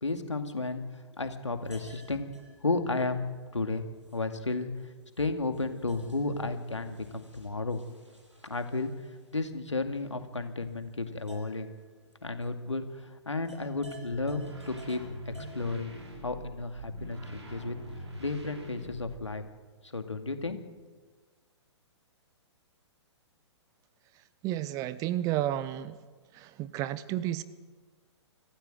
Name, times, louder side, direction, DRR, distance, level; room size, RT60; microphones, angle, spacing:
voice 1, 0.0-2.3 2.6-3.8 4.1-4.7 5.2-7.8 8.4-8.9 9.3-11.7 12.2-17.8 18.2-19.4 19.8-20.6, left 3 dB, 80° left, 7 dB, 2.3 m, -33 dB
sound 1, 1.5-13.0 13.2-15.6, right 1 dB, 85° right, 7.4 m, -56 dB
sound 2, 13.9-19.4, right 1 dB, 70° right, 6.2 m, -44 dB
voice 2, 24.4-26.0 26.3-27.4, right 13 dB, 25° right, 17 dB, 0.7 m, -31 dB
25.5 x 15.0 x 7.8 m, 1.4 s
figure-of-eight pair, 120°, 15 cm